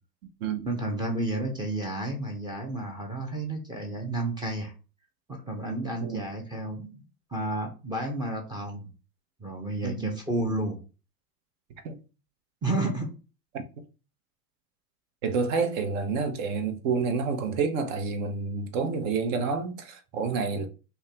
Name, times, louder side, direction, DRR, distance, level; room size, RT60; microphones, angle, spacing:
voice 1, 0.6-4.7 5.3-7.0 7.3-8.9 9.4-10.8 12.6-13.1, right 2 dB, 10° right, 0.5 m, -31 dB
voice 2, 9.8-10.2 11.8-12.0 15.2-20.7, right 5 dB, 50° right, 0.8 m, -29 dB
2.5 x 2.3 x 4.1 m
hypercardioid pair, 100°, 48 cm